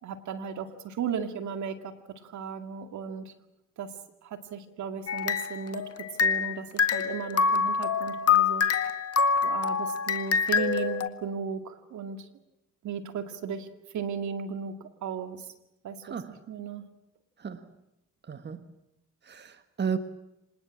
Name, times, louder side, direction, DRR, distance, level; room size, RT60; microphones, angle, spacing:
voice 1, 0.0-1.9 2.2-3.3 3.8-3.9 4.2-8.7 9.4-12.3 12.8-13.7 13.9-15.5 15.8-16.2 16.5-16.8, right 6 dB, 70° right, 8 dB, 2.3 m, -35 dB
sound 1, 5.1-6.5 6.8-11.1, left 6 dB, 55° left, 1.7 m, -26 dB
voice 2, 16.0-16.4 17.4-17.7 18.2-18.7 19.2-20.0, right 7 dB, 35° right, 10 dB, 1.4 m, -34 dB
26.0 x 19.5 x 8.7 m, 0.87 s
cardioid pair, 90°, 30 cm